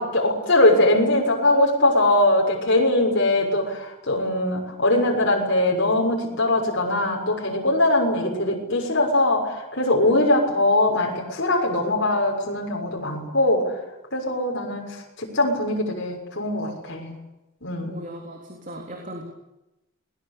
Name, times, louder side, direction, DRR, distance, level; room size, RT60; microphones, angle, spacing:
voice 1, 0.0-13.7 14.1-17.2 17.6-18.1, left 1 dB, 55° left, -1 dB, 6.6 m, -21 dB
voice 2, 17.8-19.2, right 1 dB, 40° right, 2 dB, 3.6 m, -37 dB
28.5 x 20.5 x 8.6 m, 0.97 s
head